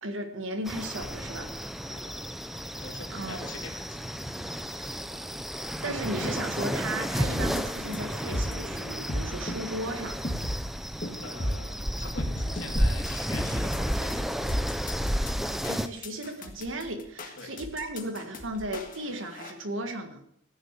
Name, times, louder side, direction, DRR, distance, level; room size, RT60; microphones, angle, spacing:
voice 1, 0.0-1.5 2.8-3.6 4.7-5.0 5.8-10.2 15.3-20.2, right 1 dB, 75° right, 6 dB, 1.7 m, -35 dB
sound 1, 0.6-15.9, equal, ahead, 0.5 m, -32 dB
voice 2, 2.7-4.0 5.1-5.3 11.2-14.2 17.4-17.5, left 3 dB, 75° left, 1 dB, 3.0 m, -44 dB
sound 2, 7.2-19.5, equal, 40° left, 1.7 m, -35 dB
15.5 x 6.6 x 8.2 m, 0.73 s
head